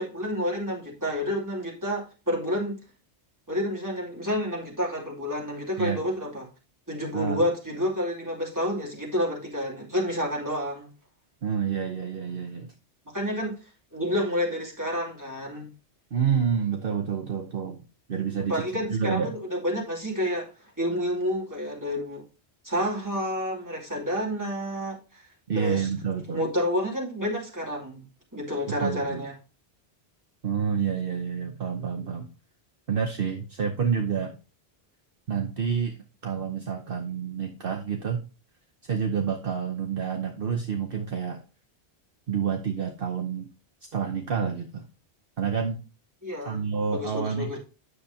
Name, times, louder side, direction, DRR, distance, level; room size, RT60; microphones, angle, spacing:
voice 1, 0.0-2.8 3.5-6.5 6.9-10.9 13.1-13.5 13.9-15.7 18.5-20.5 20.8-22.2 22.6-25.2 25.5-25.9 26.3-28.0 28.3-29.3 46.2-46.6 46.9-47.6, equal, 15° right, 2.7 m, -29 dB
voice 2, 11.4-12.7 16.1-19.3 25.5-26.4 28.7-29.2 30.4-32.3 32.9-34.4 35.3-38.2 38.8-41.4 42.3-43.5 43.9-44.8 45.4-45.8 46.4-47.6, right 7 dB, 55° right, 1.0 m, -28 dB
9.6 x 6.7 x 2.8 m
omnidirectional pair, 1.1 m